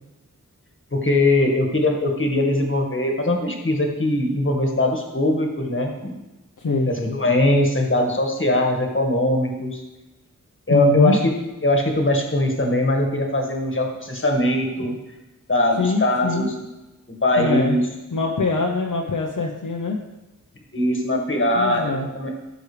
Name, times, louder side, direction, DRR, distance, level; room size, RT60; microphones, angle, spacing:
voice 1, 0.9-6.1 6.9-9.8 10.7-11.4 11.6-14.9 15.5-16.5 17.2-17.8 20.7-22.3, left 1 dB, 35° left, 2 dB, 1.8 m, -21 dB
voice 2, 6.6-6.9 10.7-11.2 15.8-16.5 17.4-17.8 18.1-20.0 21.5-22.1, left 3 dB, 70° left, -1 dB, 1.0 m, -23 dB
13.5 x 6.2 x 3.4 m, 1.0 s
wide cardioid pair, 65°, 33 cm